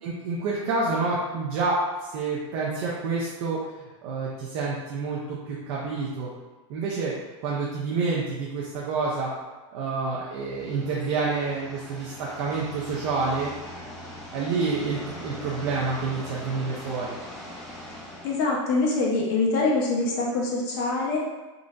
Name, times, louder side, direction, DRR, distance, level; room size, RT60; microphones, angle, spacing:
voice 1, 0.0-6.3 6.7-7.1 7.4-9.3 9.7-13.5 14.3-17.2, right 4 dB, 50° right, -5 dB, 0.5 m, -28 dB
sound 1, 10.4-18.5, equal, ahead, 0.5 m, -41 dB
voice 2, 18.2-21.2, left 3 dB, 50° left, -3 dB, 0.8 m, -24 dB
3.7 x 2.0 x 2.5 m, 1.2 s
supercardioid pair, 145°, 16 cm